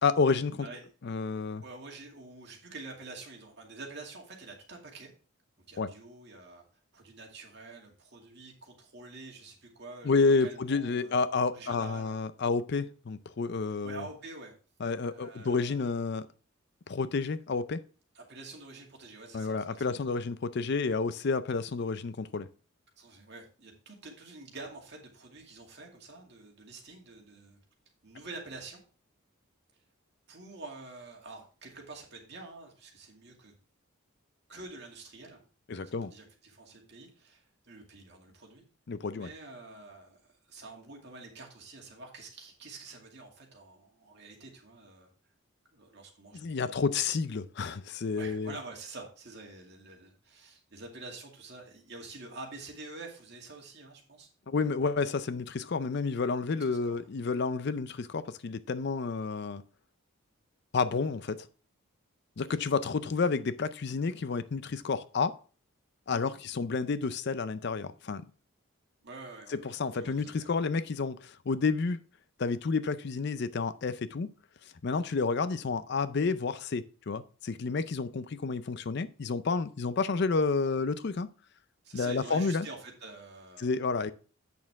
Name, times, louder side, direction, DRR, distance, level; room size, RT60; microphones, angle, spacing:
voice 1, 0.0-0.7 1.0-1.6 5.8-5.9 10.0-14.0 14.8-16.3 16.9-17.8 19.3-22.5 35.7-36.1 38.9-39.3 46.3-48.5 54.5-59.6 60.7-61.4 62.4-65.4 66.1-68.2 69.7-72.0 72.4-74.3 74.8-81.3 81.9-82.7 83.6-84.1, left 4 dB, 50° left, 0.5 m, -30 dB
voice 2, 1.6-5.1 5.7-6.6 6.9-12.2 13.8-14.5 15.0-15.8 18.1-20.0 23.0-27.6 28.0-28.8 30.3-33.5 34.5-35.4 35.8-38.6 39.1-45.1 45.7-46.7 48.1-54.3 56.7-57.0 62.5-62.6 66.1-66.4 69.0-70.5 81.8-83.7, right 3 dB, 55° right, 2.3 m, -47 dB
8.3 x 6.5 x 3.5 m
head